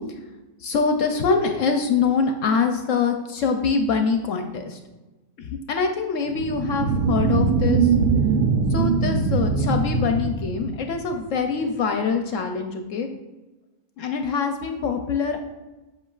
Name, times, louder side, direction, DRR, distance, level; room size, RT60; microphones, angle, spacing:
voice 1, 0.6-4.8 5.4-7.9 8.7-13.1 14.0-15.4, left 5 dB, 65° left, 5 dB, 0.8 m, -24 dB
sound 1, 6.3-11.3, right 4 dB, 80° right, 1.1 m, -22 dB
8.1 x 5.6 x 2.4 m, 1.1 s
omnidirectional pair, 1.7 m